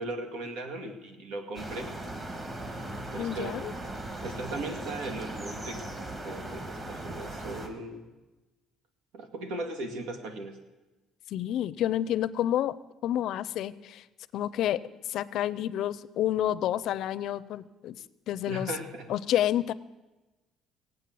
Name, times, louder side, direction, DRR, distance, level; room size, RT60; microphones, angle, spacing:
voice 1, 0.0-1.9 3.1-3.6 4.2-8.1 9.1-10.6 18.5-19.1, right 2 dB, 85° right, 7 dB, 2.0 m, -38 dB
sound 1, 1.5-7.7, right 1 dB, 25° right, 1.7 m, -38 dB
voice 2, 3.2-3.7 11.3-12.8 13.0-14.0 14.3-14.8 15.1-18.7 19.1-19.7, left 11 dB, 60° left, 16 dB, 0.5 m, -29 dB
17.5 x 8.7 x 7.6 m, 1.1 s
cardioid pair, 155°, 0 cm